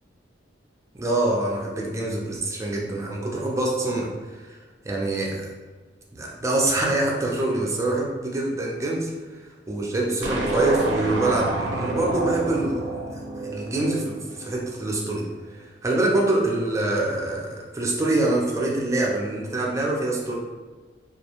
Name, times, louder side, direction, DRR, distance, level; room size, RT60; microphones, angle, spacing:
voice 1, 0.9-4.6 4.8-5.5 6.1-13.1 13.4-20.3, right 2 dB, 15° right, -2 dB, 0.4 m, -25 dB
sound 1, 10.2-14.6, right 2 dB, 80° right, 0.4 m, -28 dB
2.3 x 2.1 x 2.9 m, 1.4 s
head